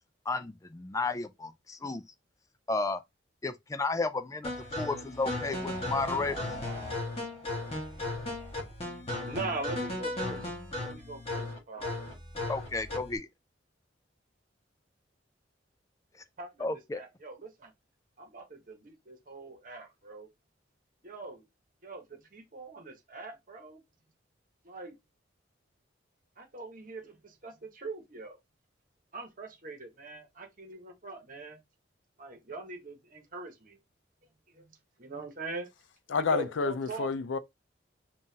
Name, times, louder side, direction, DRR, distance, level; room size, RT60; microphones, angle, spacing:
voice 1, 0.3-2.0 2.7-3.0 3.4-6.5 12.5-13.3 16.6-17.0, left 3 dB, 15° left, 0.4 m, -33 dB
sound 1, 4.4-13.2, left 2 dB, 35° left, 1.6 m, -36 dB
voice 2, 9.2-10.5 10.8-12.2 16.4-17.7 18.2-20.3 21.0-21.4 21.8-23.8 24.6-25.0 26.4-28.4 29.1-31.6 32.2-33.8 34.5-35.7 36.2-37.1, right 2 dB, 45° right, 1.1 m, -42 dB
voice 3, 36.1-37.4, left 4 dB, 80° left, 0.5 m, -29 dB
5.5 x 2.5 x 2.7 m
head